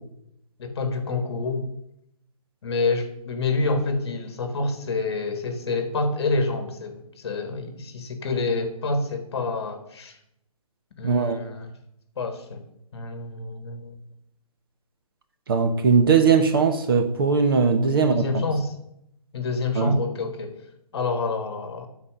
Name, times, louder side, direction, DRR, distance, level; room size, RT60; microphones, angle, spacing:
voice 1, 0.6-1.6 2.6-10.2 11.0-11.7 12.2-12.6 12.9-14.0 18.0-18.7 19.3-20.6 20.9-21.9, left 3 dB, 45° left, 7 dB, 1.4 m, -27 dB
voice 2, 11.0-11.4 15.5-18.2 19.8-20.0, right 5 dB, 35° right, 7 dB, 0.7 m, -19 dB
9.5 x 4.3 x 7.4 m, 0.76 s
hypercardioid pair, 165°, 19 cm